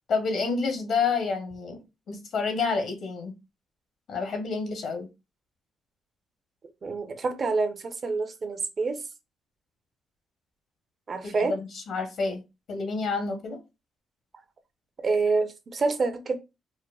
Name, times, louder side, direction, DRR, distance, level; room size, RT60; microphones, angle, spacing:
voice 1, 0.1-1.8 2.1-3.3 4.1-5.1 11.2-12.4 12.7-13.6, left 4 dB, 65° left, 1.0 m, -29 dB
voice 2, 6.8-9.0 11.1-11.6 15.0-16.3, right 3 dB, 40° right, 0.7 m, -27 dB
4.4 x 2.1 x 2.3 m
cardioid pair, 90°, 0 cm